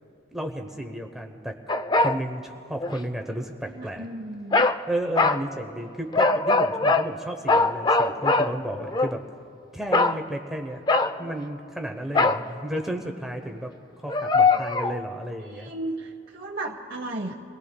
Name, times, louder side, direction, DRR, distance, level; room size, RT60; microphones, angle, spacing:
voice 1, 0.3-1.5 2.0-4.1 4.9-9.2 9.7-10.8 11.2-13.7 14.0-15.7, right 1 dB, ahead, 3 dB, 0.8 m, -33 dB
sound 1, 1.7-2.2 2.8-3.0 4.5-4.8 5.2-5.4 6.1-7.1 7.5-9.1 9.9-10.2 10.9-11.3 12.1-12.5 14.1-15.0, left 3 dB, 20° left, 0.3 m, -21 dB
voice 2, 3.6-4.7 15.5-17.3, right 2 dB, 50° right, -1 dB, 0.8 m, -35 dB
29.0 x 19.5 x 2.2 m, 2.7 s
head